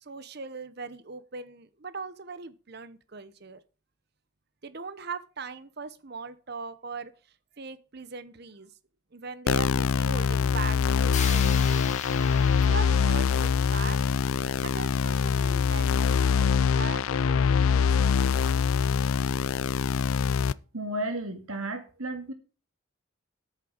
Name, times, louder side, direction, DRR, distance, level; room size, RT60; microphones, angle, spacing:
voice 1, 0.0-3.6 4.6-7.1 7.6-8.7 9.1-11.6 12.5-14.0 14.6-18.6, right 4 dB, 50° right, 0.8 m, -40 dB
sound 1, 9.5-20.5, left 6 dB, 75° left, 0.4 m, -24 dB
sound 2, 11.1-15.2, left 6 dB, 35° left, 1.4 m, -39 dB
voice 2, 20.7-22.3, right 1 dB, 85° right, 2.2 m, -33 dB
8.7 x 6.6 x 6.4 m
head